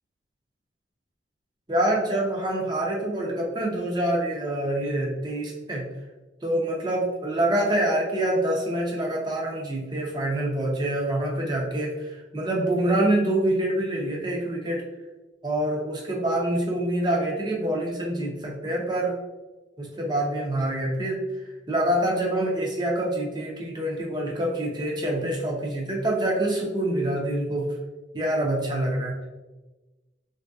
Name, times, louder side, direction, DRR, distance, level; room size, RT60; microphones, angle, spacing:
voice 1, 1.7-5.8 6.4-14.8 15.4-19.1 19.8-27.7 28.1-29.2, right 1 dB, 25° right, -2 dB, 0.6 m, -26 dB
3.5 x 2.6 x 2.3 m, 1.1 s
head